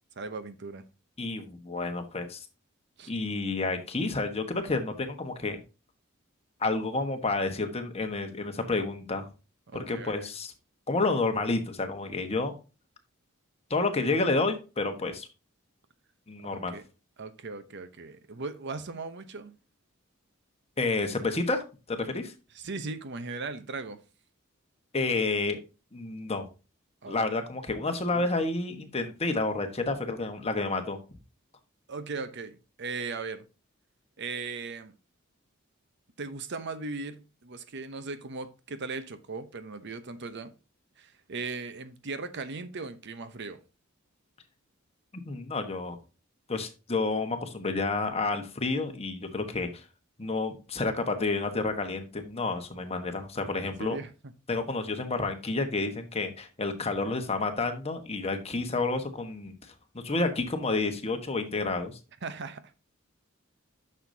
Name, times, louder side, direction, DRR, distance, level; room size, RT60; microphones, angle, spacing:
voice 1, 0.2-0.8 3.0-3.1 9.7-10.3 16.4-16.8 17.2-19.5 22.5-24.0 27.0-27.2 28.1-28.3 31.9-33.5 34.2-34.9 36.2-40.5 41.0-43.6 53.6-54.1 62.2-62.7, right 4 dB, 55° right, 0.8 m, -38 dB
voice 2, 1.2-2.4 3.1-5.6 6.6-9.3 9.7-10.5 10.9-12.6 13.7-15.3 16.3-16.8 20.8-21.6 21.9-22.3 24.9-25.6 25.9-26.5 27.1-31.0 45.3-46.0 46.5-49.8 50.2-54.0 54.5-59.5 60.0-62.0, left 3 dB, 30° left, 1.3 m, -30 dB
9.7 x 6.6 x 2.7 m
head